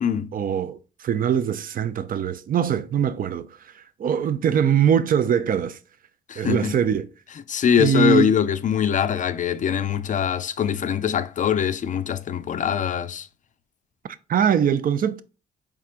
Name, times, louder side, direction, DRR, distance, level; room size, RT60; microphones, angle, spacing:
voice 1, 0.3-3.5 3.7-5.8 6.4-7.1 7.8-8.3 14.3-15.2, right 8 dB, 45° right, 0.4 m, -22 dB
voice 2, 6.3-6.7 7.5-13.3, left 8 dB, 40° left, 0.4 m, -23 dB
4.3 x 3.6 x 2.4 m
cardioid pair, 90°, 20 cm